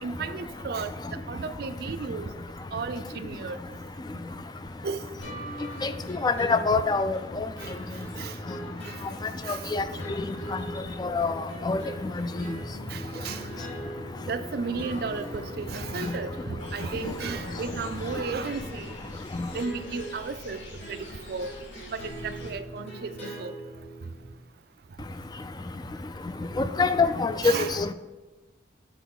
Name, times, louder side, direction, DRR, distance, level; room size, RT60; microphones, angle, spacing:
voice 1, 0.0-2.3 2.7-3.6 4.8-5.0 7.6-7.7 8.2-8.4 8.9-9.0 9.4-9.6 9.9-10.0 12.9-13.4 14.3-18.9 19.5-20.6 20.9-21.5 21.9-23.5 27.4-27.8, right 4 dB, 55° right, 11 dB, 0.4 m, -34 dB
sound 1, 5.2-24.4, right 1 dB, 65° left, 2.6 m, -42 dB
voice 2, 6.2-7.2 9.7-9.8 11.0-11.3 11.7-11.8 12.2-12.3 26.6-27.9, left 4 dB, 20° left, 10 dB, 0.3 m, -24 dB
sound 2, 11.5-17.6, equal, 80° right, 0.8 m, -48 dB
sound 3, 16.6-22.5, left 1 dB, 85° left, 1.4 m, -46 dB
7.2 x 3.9 x 6.0 m, 1.2 s
head